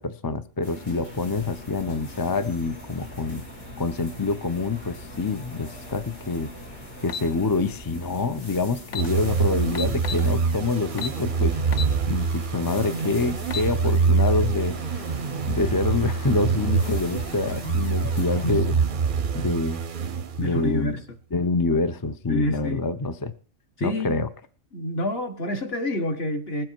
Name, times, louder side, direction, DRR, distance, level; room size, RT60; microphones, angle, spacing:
voice 1, 0.0-3.4 3.8-6.5 7.0-11.7 12.1-15.1 15.5-18.8 19.3-19.8 20.4-21.0 21.3-23.3 23.8-24.3, left 3 dB, 30° left, 0.4 m, -26 dB
sound 1, 0.6-18.6, left 1 dB, 85° left, 4.9 m, -41 dB
sound 2, 7.1-7.3 8.5-8.6 8.8-9.1 9.7-10.3 11.0-11.2 11.7-11.9 12.4-12.5 13.3-13.7, left 6 dB, 60° left, 1.2 m, -31 dB
sound 3, 9.0-20.7, right 5 dB, 50° right, 0.7 m, -25 dB
voice 2, 20.4-21.0 22.3-22.8 23.8-24.2 24.7-26.6, left 1 dB, 45° left, 1.7 m, -27 dB
20.0 x 7.7 x 4.5 m
omnidirectional pair, 1.5 m